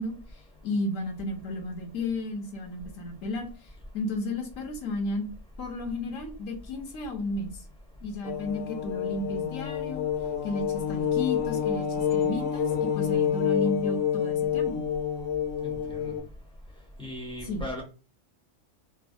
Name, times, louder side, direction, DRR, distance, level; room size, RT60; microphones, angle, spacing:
voice 1, 0.0-5.3 5.6-7.6 8.0-10.1 10.4-14.9 17.4-17.6, left 2 dB, 70° left, 3 dB, 1.1 m, -33 dB
sound 1, 8.2-16.2, left 8 dB, 55° left, 0.7 m, -28 dB
voice 2, 15.6-16.1 17.0-17.8, left 1 dB, 10° left, -2 dB, 0.3 m, -37 dB
3.1 x 2.1 x 2.5 m, 0.34 s
omnidirectional pair, 1.5 m